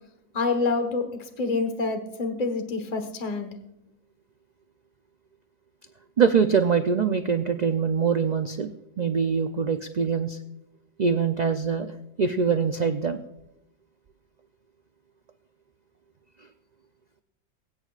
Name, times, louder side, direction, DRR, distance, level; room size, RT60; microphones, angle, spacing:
voice 1, 0.3-3.5, left 3 dB, 30° left, 6 dB, 1.3 m, -27 dB
voice 2, 6.2-10.4 11.0-11.9 12.2-13.2, right 6 dB, 75° right, 7 dB, 0.3 m, -23 dB
22.5 x 9.0 x 2.4 m, 0.81 s
omnidirectional pair, 1.5 m